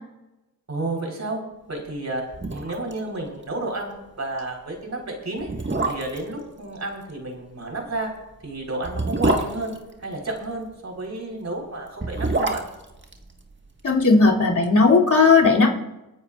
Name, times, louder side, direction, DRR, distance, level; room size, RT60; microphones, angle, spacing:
voice 1, 0.7-1.4 1.7-2.2 2.5-5.5 5.9-8.1 8.4-12.7, right 2 dB, 45° right, 1 dB, 4.1 m, -31 dB
sound 1, 2.0-2.1 2.3-3.0 3.3-3.4 3.8-4.0 4.7-4.8 5.4-6.3 7.8-10.5 11.8-14.0 14.3-14.4, right 2 dB, 30° right, 1.6 m, -26 dB
voice 2, 13.8-15.7, left 4 dB, 55° left, -3 dB, 2.9 m, -16 dB
28.0 x 9.4 x 2.5 m, 0.99 s
cardioid pair, 50°, 37 cm